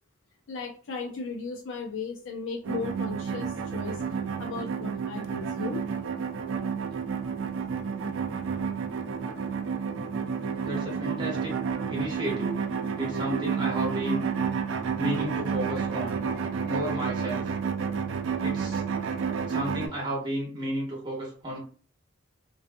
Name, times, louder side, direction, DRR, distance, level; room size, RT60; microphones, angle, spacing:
voice 1, 0.5-4.0 4.4-5.8, left 4 dB, 75° left, 2 dB, 0.5 m, -36 dB
sound 1, 2.6-19.9, right 6 dB, 70° right, 0.4 m, -30 dB
voice 2, 10.6-11.5 11.9-12.6 13.0-14.3 15.0-16.3 16.6-17.5 18.4-18.8 19.4-21.6, equal, 25° right, -5 dB, 0.8 m, -32 dB
2.6 x 2.3 x 2.5 m, 0.44 s
head